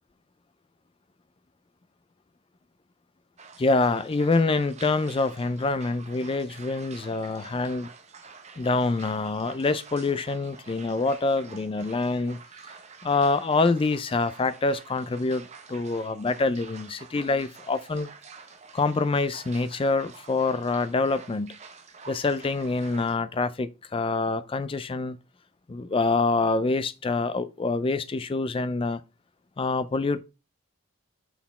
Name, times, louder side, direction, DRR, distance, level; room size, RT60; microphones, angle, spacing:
sound 1, 3.4-23.2, right 5 dB, 30° right, 0.6 m, -48 dB
voice 1, 3.6-7.9 8.6-12.4 13.0-18.1 18.7-21.5 22.1-25.2 25.7-29.0 29.6-30.2, left 3 dB, 25° left, 0.3 m, -26 dB
5.8 x 4.2 x 4.1 m
head